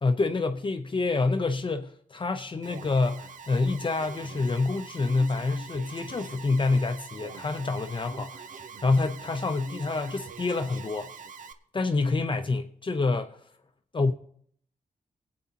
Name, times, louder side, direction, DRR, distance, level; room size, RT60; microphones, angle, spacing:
voice 1, 0.0-8.4 8.8-11.1 11.7-13.4 13.9-14.1, left 3 dB, 35° left, 0.7 m, -27 dB
Alarm, 2.6-11.5, right 5 dB, 70° right, 0.7 m, -44 dB
21.5 x 8.6 x 2.9 m
cardioid pair, 90°, 14 cm